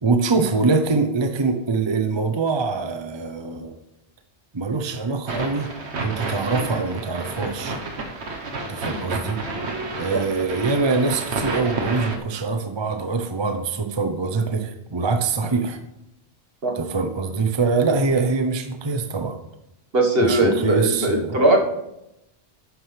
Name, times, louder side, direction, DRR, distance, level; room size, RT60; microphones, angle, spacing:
voice 1, 0.0-3.7 4.5-5.7 6.0-7.8 8.7-9.4 10.0-15.8 16.7-19.4 20.2-21.4, right 4 dB, 30° right, 7 dB, 0.7 m, -24 dB
sound 1, 5.3-12.2, right 3 dB, 80° right, 1.5 m, -30 dB
voice 2, 19.9-21.6, right 1 dB, 60° right, 1 dB, 1.8 m, -19 dB
12.0 x 9.6 x 3.4 m, 0.87 s
omnidirectional pair, 1.1 m